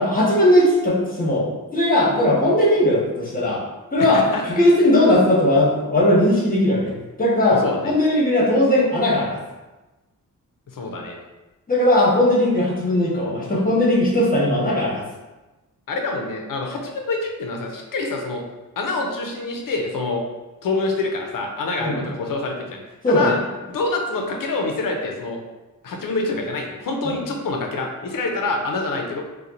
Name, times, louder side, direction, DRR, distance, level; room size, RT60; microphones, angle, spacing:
voice 1, 0.0-3.6 3.9-9.4 11.7-15.0 21.8-22.0 23.0-23.3 27.0-27.1, left 1 dB, 25° left, -5 dB, 1.2 m, -18 dB
voice 2, 4.0-4.4 7.5-7.9 10.7-11.2 15.9-18.4 18.8-20.2 20.6-22.8 23.1-23.4 23.7-25.4 25.8-29.2, left 3 dB, 65° left, 2 dB, 0.7 m, -26 dB
4.3 x 2.3 x 2.6 m, 1.1 s
cardioid pair, 85°, 36 cm